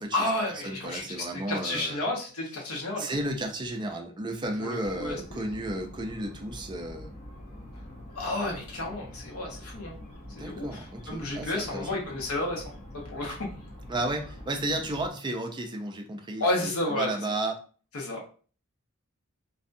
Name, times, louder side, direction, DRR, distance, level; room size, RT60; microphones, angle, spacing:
voice 1, 0.1-3.1 4.6-5.5 8.1-10.0 10.4-13.5 16.4-17.2 17.9-18.2, left 1 dB, 90° left, -2 dB, 0.9 m, -31 dB
voice 2, 0.6-2.1 3.0-7.1 10.3-12.0 13.9-17.5, right 1 dB, 20° right, 3 dB, 0.4 m, -33 dB
sound 1, 4.8-15.1, left 1 dB, 35° left, 0.7 m, -45 dB
2.6 x 2.2 x 2.5 m, 0.39 s
head